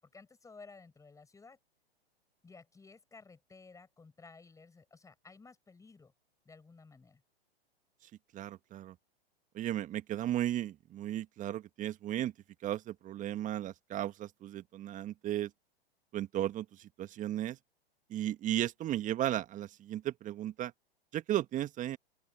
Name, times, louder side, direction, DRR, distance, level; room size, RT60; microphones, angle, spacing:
voice 1, 0.0-1.6 2.4-6.1 6.5-7.2, left 4 dB, 10° left, 7.0 m, -55 dB
voice 2, 8.3-8.9 9.5-12.3 12.6-15.5 16.1-17.6 18.1-20.7 21.1-22.0, right 12 dB, 25° right, 1.6 m, -35 dB
open air
figure-of-eight pair, 110°, 31 cm